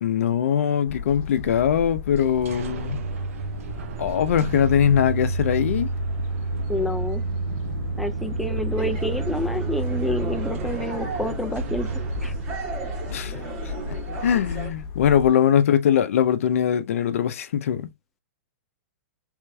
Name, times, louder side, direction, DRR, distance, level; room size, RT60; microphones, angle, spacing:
voice 1, 0.0-3.0 4.0-5.9 13.1-13.4 14.2-17.9, left 9 dB, 70° left, 0.5 m, -21 dB
sound 1, 0.9-15.3, left 4 dB, 45° left, 1.0 m, -35 dB
sound 2, 2.2-13.8, right 4 dB, 70° right, 0.5 m, -30 dB
voice 2, 6.7-7.2 8.0-11.9 12.2-12.3, left 1 dB, ahead, 0.3 m, -28 dB
sound 3, 8.8-14.7, right 4 dB, 45° right, 1.9 m, -37 dB
3.4 x 3.1 x 2.2 m
hypercardioid pair, 125°, 8 cm